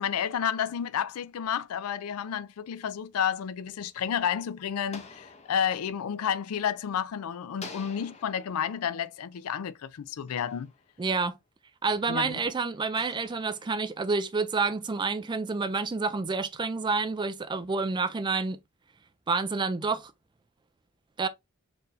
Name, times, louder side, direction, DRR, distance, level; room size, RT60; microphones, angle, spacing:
voice 1, 0.0-10.7 12.1-12.4, left 8 dB, 75° left, 0.4 m, -31 dB
sound 1, 3.4-7.1 7.5-11.3 11.9-14.6, left 4 dB, 30° left, 0.7 m, -51 dB
voice 2, 11.0-11.4 11.8-18.6 19.3-20.1 21.2-21.3, right 4 dB, 20° right, 0.3 m, -28 dB
4.4 x 2.7 x 3.0 m
head